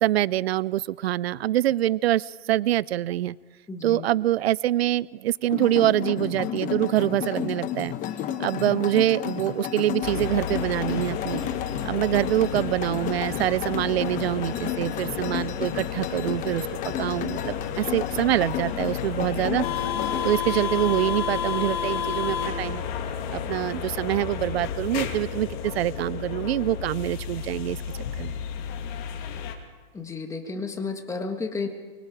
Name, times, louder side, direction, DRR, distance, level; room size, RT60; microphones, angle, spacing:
voice 1, 0.0-3.4 3.8-7.9 8.4-11.4 11.9-19.7 20.2-22.8 23.3-27.8 28.2-28.4, right 13 dB, 90° right, 22 dB, 0.5 m, -25 dB
voice 2, 3.7-4.1 29.9-31.7, left 4 dB, 10° left, 5 dB, 1.6 m, -32 dB
sound 1, 5.5-20.3, left 10 dB, 25° left, 1.0 m, -32 dB
sound 2, 10.0-29.5, left 7 dB, 50° left, 2.6 m, -32 dB
23.5 x 23.5 x 5.0 m, 1.4 s
supercardioid pair, 145°, 30 cm